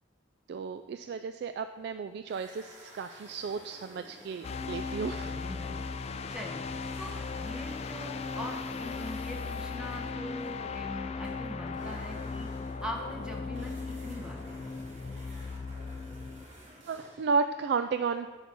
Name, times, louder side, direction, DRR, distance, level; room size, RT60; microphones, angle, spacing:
voice 1, 0.5-5.4 16.8-18.3, right 5 dB, 60° right, 9 dB, 0.3 m, -33 dB
sound 1, 2.2-6.3 6.6-17.4, equal, 80° right, 2.6 m, -54 dB
sound 2, 4.4-16.5, left 4 dB, 35° left, 0.3 m, -37 dB
voice 2, 5.1-5.9 6.3-6.6 7.0-12.5 12.8-14.9, equal, 5° right, -1 dB, 0.9 m, -42 dB
8.1 x 5.2 x 6.2 m, 1.5 s
head